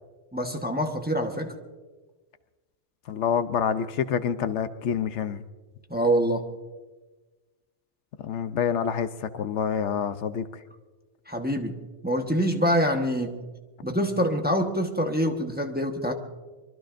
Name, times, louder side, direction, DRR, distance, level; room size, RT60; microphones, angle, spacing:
voice 1, 0.3-1.5 5.9-6.5 11.3-11.8 12.0-13.4 13.8-16.1, equal, 10° right, 3 dB, 1.1 m, -25 dB
voice 2, 3.1-5.4 8.2-10.4, left 7 dB, 75° left, 11 dB, 1.0 m, -27 dB
24.5 x 23.0 x 2.6 m, 1.3 s
omnidirectional pair, 1.2 m